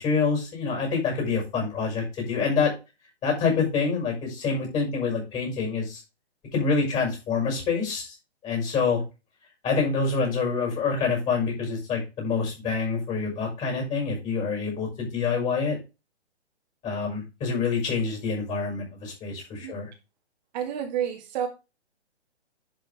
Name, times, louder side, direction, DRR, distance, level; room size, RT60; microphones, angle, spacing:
voice 1, 0.0-2.7 3.2-6.0 6.5-8.1 8.4-9.0 9.6-15.8 16.8-19.9, left 5 dB, 20° left, 0 dB, 6.1 m, -26 dB
voice 2, 20.5-21.5, right 9 dB, 40° right, 2 dB, 2.0 m, -29 dB
10.5 x 5.8 x 3.5 m, 0.28 s
figure-of-eight pair, 130°, 34 cm